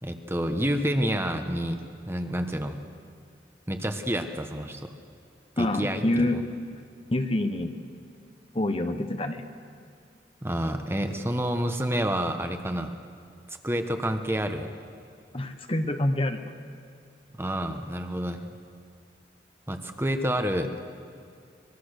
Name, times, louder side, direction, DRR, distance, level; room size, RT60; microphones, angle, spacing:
voice 1, 0.0-2.8 3.7-4.9 5.6-6.4 10.4-12.9 13.5-14.7 17.4-18.5 19.7-20.7, equal, 15° right, 6 dB, 1.1 m, -29 dB
voice 2, 5.6-6.4 7.1-7.7 8.5-9.4 15.3-16.4, left 1 dB, 30° left, 7 dB, 1.0 m, -26 dB
25.0 x 21.0 x 6.6 m, 2.3 s
head